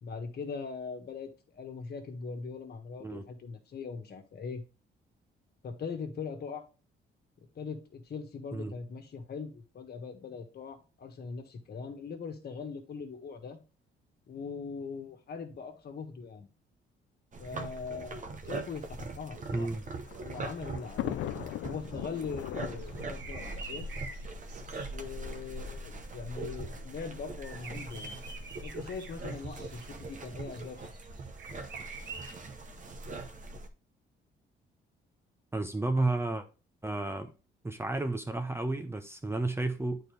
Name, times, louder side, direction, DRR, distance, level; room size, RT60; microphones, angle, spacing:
voice 1, 0.0-4.6 5.6-6.6 7.5-13.6 14.3-16.5 17.4-19.7 20.2-21.2 21.7-23.9 24.9-28.2 28.6-30.9, left 5 dB, 55° left, 1.5 m, -41 dB
sound 1, 17.3-33.7, right 3 dB, 40° right, 0.9 m, -41 dB
voice 2, 19.5-19.8 35.5-36.5 36.8-37.3 37.6-40.0, right 2 dB, 10° right, 0.7 m, -32 dB
Thunder, 19.7-24.8 25.7-25.8 26.0-26.1 27.2-27.5, left 15 dB, 75° left, 0.4 m, -40 dB
sound 2, 22.8-24.9 27.4-32.3, right 3 dB, 60° right, 1.7 m, -46 dB
8.9 x 4.3 x 3.3 m
cardioid pair, 90°, 20 cm